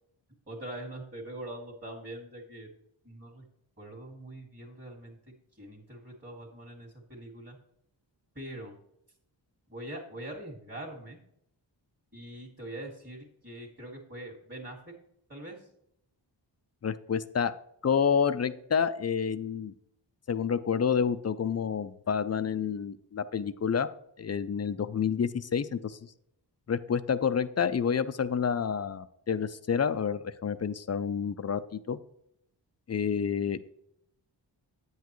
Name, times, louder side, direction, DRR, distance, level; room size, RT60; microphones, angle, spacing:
voice 1, 0.5-2.7 3.0-3.4 3.8-5.2 5.5-7.6 8.4-8.7 9.7-11.2 12.1-14.8 15.3-15.7, right 1 dB, 25° right, -4 dB, 1.9 m, -43 dB
voice 2, 16.8-17.5 17.8-19.7 20.3-23.9 24.2-26.0 26.7-32.0 32.9-33.6, left 7 dB, 35° left, 13 dB, 0.4 m, -29 dB
9.3 x 8.1 x 3.1 m, 0.74 s
wide cardioid pair, 105°, 45 cm